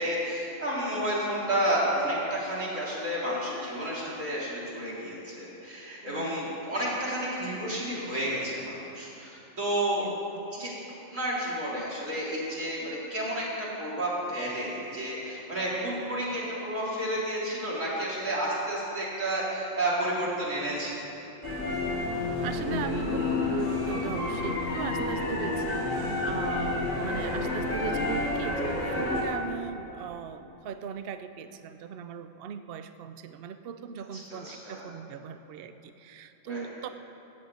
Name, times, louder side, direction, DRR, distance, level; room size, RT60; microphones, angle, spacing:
voice 1, 0.0-10.1 10.5-10.7 11.1-21.0 26.2-26.3 34.1-34.9 36.5-36.6, right 1 dB, 80° right, -7 dB, 3.8 m, -31 dB
voice 2, 6.0-6.4 10.0-10.4 22.4-36.9, right 7 dB, 60° right, 10 dB, 0.7 m, -39 dB
sound 1, 21.4-29.2, left 2 dB, 40° left, 3.6 m, -29 dB
13.5 x 7.8 x 8.4 m, 2.9 s
omnidirectional pair, 1.3 m